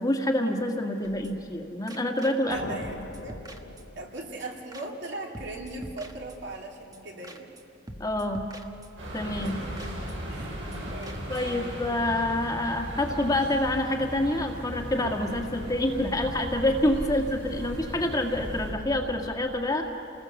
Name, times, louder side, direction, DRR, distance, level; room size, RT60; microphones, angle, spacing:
voice 1, 0.0-2.6 8.0-8.4 9.1-9.6 11.3-19.8, left 1 dB, 20° left, 3 dB, 1.7 m, -27 dB
sound 1, 1.0-1.6 1.9-2.6 2.8-4.1 4.4-4.5 4.7-5.1 5.3-6.7 6.9-7.0 7.2-7.6 7.9-9.2 9.5-9.6 9.8-10.1 10.4-11.6, right 1 dB, 20° right, 1.2 m, -45 dB
sound 2, 2.5-4.7, left 3 dB, 60° left, 0.7 m, -42 dB
voice 2, 2.5-3.5 3.9-7.5 9.4-9.6 10.3-10.6 10.9-11.7, right 2 dB, 60° right, 0 dB, 3.1 m, -39 dB
sound 3, 9.0-18.7, equal, 75° right, 7.8 m, -37 dB
29.0 x 20.0 x 7.1 m, 2.8 s
head